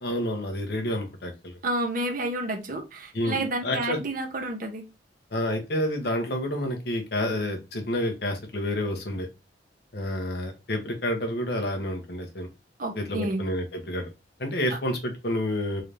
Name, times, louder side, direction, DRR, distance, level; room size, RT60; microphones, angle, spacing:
voice 1, 0.0-1.6 3.1-4.0 5.3-9.3 9.9-12.5 13.0-14.1 14.4-15.8, left 1 dB, 60° left, 3 dB, 1.1 m, -29 dB
voice 2, 1.6-4.8 12.8-13.4, right 1 dB, 50° right, 3 dB, 0.9 m, -30 dB
4.0 x 2.7 x 3.3 m, 0.26 s
head